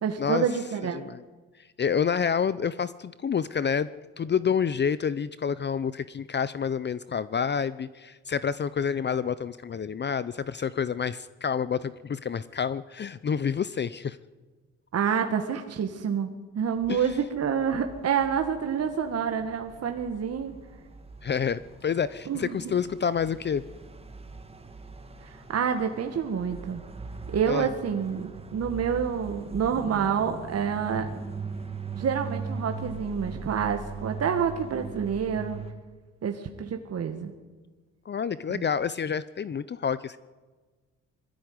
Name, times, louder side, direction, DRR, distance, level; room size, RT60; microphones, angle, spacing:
voice 1, 0.0-1.0 14.9-16.3 16.6-20.5 22.3-22.6 25.2-26.8 27.3-31.1 32.0-35.6 36.2-37.3 38.5-38.6, right 7 dB, 55° right, 5 dB, 1.8 m, -28 dB
voice 2, 1.8-3.9 4.2-14.2 16.9-17.1 21.2-23.6 27.5-27.7 38.1-40.2, left 7 dB, 35° left, 16 dB, 0.7 m, -28 dB
sound 1, 16.6-35.7, right 4 dB, 20° right, 2.2 m, -40 dB
20.5 x 14.5 x 9.7 m, 1.3 s
cardioid pair, 90°, 30 cm